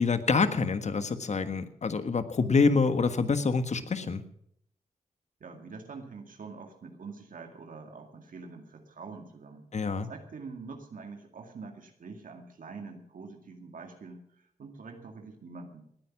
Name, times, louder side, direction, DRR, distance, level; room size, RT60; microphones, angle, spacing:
voice 1, 0.0-4.2 9.7-10.1, left 4 dB, 55° left, 11 dB, 1.5 m, -26 dB
voice 2, 5.4-9.7 10.1-15.9, right 4 dB, 70° right, 4 dB, 2.1 m, -45 dB
19.0 x 9.7 x 6.0 m, 0.70 s
cardioid pair, 60°, 14 cm